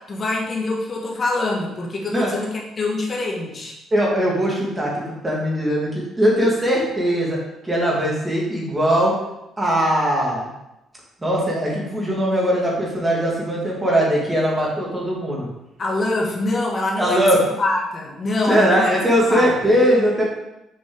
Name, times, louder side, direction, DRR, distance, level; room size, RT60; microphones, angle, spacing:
voice 1, 0.0-3.8 15.8-17.2 17.6-18.9 19.3-19.5, left 2 dB, 35° left, -2 dB, 1.5 m, -24 dB
voice 2, 3.9-7.4 7.6-9.1 9.6-10.5 11.2-15.5 17.0-17.4 18.5-20.2, equal, 15° right, -4 dB, 2.5 m, -20 dB
7.1 x 5.0 x 3.9 m, 0.89 s
cardioid pair, 110°, 0 cm